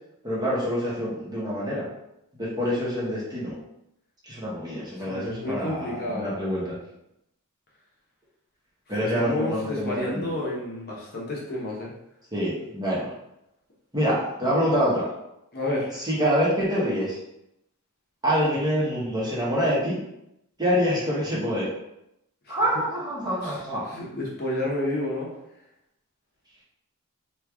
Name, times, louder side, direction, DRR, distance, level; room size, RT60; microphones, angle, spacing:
voice 1, 0.2-1.9 2.4-3.6 4.2-6.8 8.9-10.3 12.3-13.1 13.9-15.1 15.9-17.2 18.2-20.0 20.6-21.7 22.5-23.8, equal, 20° right, -7 dB, 1.0 m, -26 dB
voice 2, 5.1-6.3 9.0-11.9 15.5-16.0 22.5-22.6 23.4-23.6 23.9-25.3, left 1 dB, 45° left, -4 dB, 0.9 m, -30 dB
3.1 x 2.3 x 3.5 m, 0.86 s
head